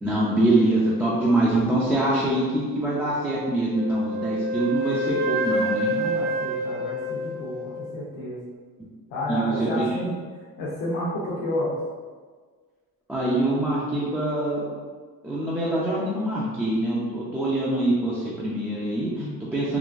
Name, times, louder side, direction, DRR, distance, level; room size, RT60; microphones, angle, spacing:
voice 1, 0.0-5.9 9.3-10.0 13.1-14.7 15.2-19.3 19.5-19.8, right 1 dB, 5° right, -7 dB, 0.4 m, -24 dB
Wind instrument woodwind instrument, 3.7-7.9, right 1 dB, 65° right, 0.9 m, -28 dB
voice 2, 5.9-8.4 9.1-10.2 10.6-11.8 19.2-19.4, left 1 dB, 75° left, -8 dB, 0.9 m, -30 dB
3.8 x 2.5 x 2.4 m, 1.5 s
cardioid pair, 135°, 36 cm